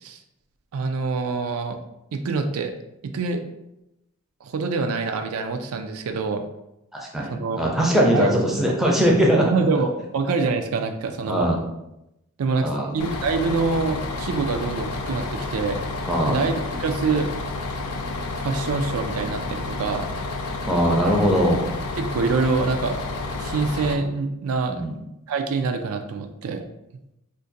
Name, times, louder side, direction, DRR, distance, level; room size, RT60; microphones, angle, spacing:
voice 1, 0.7-1.8 2.1-2.7 3.0-3.4 4.4-6.4 7.3-7.6 8.1-8.3 9.5-11.5 12.4-15.8 16.3-17.3 18.3-20.1 22.0-23.0 23.4-24.8 25.3-26.6, right 4 dB, 80° right, 6 dB, 0.4 m, -25 dB
voice 2, 6.9-9.5 11.3-11.6 12.6-12.9 16.1-16.4 20.6-21.6 24.7-25.0, equal, ahead, -3 dB, 0.5 m, -20 dB
Bus, 13.0-23.9, left 3 dB, 90° left, 0.4 m, -30 dB
2.5 x 2.5 x 3.9 m, 0.88 s
head